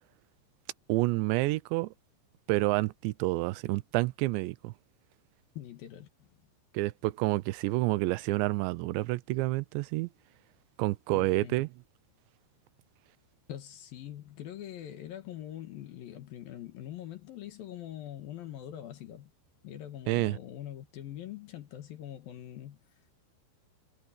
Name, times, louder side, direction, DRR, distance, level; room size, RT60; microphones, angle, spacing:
voice 1, 0.9-1.9 2.5-4.7 6.7-10.1 10.8-11.7 20.1-20.4, right 20 dB, 90° right, 3.0 m, -29 dB
voice 2, 5.6-6.4 11.1-11.6 13.5-19.3 19.6-22.8, left 11 dB, 65° left, 2.9 m, -43 dB
omnidirectional pair, 5.0 m